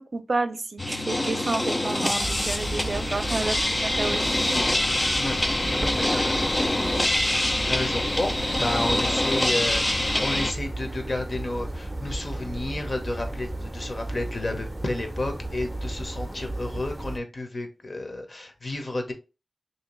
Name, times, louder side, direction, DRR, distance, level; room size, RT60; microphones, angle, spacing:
voice 1, 0.0-4.3, right 3 dB, 55° right, 0.6 m, -30 dB
sound 1, 0.8-10.5, left 1 dB, 25° left, 0.4 m, -25 dB
sound 2, 2.2-17.2, right 1 dB, 15° right, 0.6 m, -34 dB
voice 2, 5.6-19.1, left 2 dB, 45° left, 0.9 m, -32 dB
3.3 x 2.8 x 3.1 m
wide cardioid pair, 80°, 0 cm